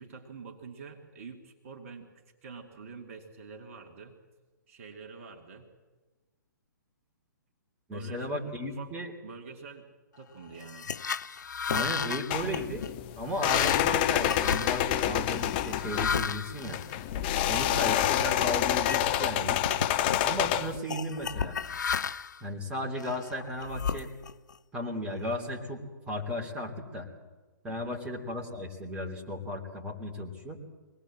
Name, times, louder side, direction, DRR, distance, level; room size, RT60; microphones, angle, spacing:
voice 1, 0.0-4.2 4.7-5.7 7.9-8.9 9.2-9.9 10.2-10.9 27.7-28.0, right 5 dB, 40° right, 2 dB, 2.3 m, -46 dB
voice 2, 7.9-9.1 11.7-12.9 13.2-16.8 17.5-19.6 20.2-21.6 22.4-24.1 24.7-27.1 27.6-30.6, left 1 dB, 10° right, -1 dB, 3.1 m, -35 dB
sound 1, 10.6-17.6 18.1-18.3 18.7-19.4 19.6-20.3 20.9-22.4 23.0-24.5, left 6 dB, 60° left, 0.6 m, -34 dB
sound 2, 12.3-20.8, left 12 dB, 30° left, 0.8 m, -28 dB
24.0 x 18.5 x 7.6 m, 1.3 s
figure-of-eight pair, 125°, 11 cm